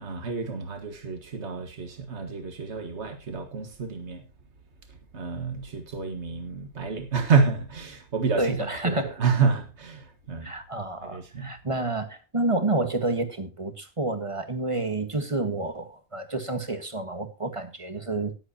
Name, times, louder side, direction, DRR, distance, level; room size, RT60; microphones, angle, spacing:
voice 1, 0.0-4.3 4.9-10.5 11.0-11.5, right 5 dB, 75° right, 1.9 m, -28 dB
voice 2, 8.4-9.2 10.4-18.3, right 2 dB, 30° right, 1.5 m, -29 dB
19.0 x 7.9 x 2.8 m
omnidirectional pair, 1.2 m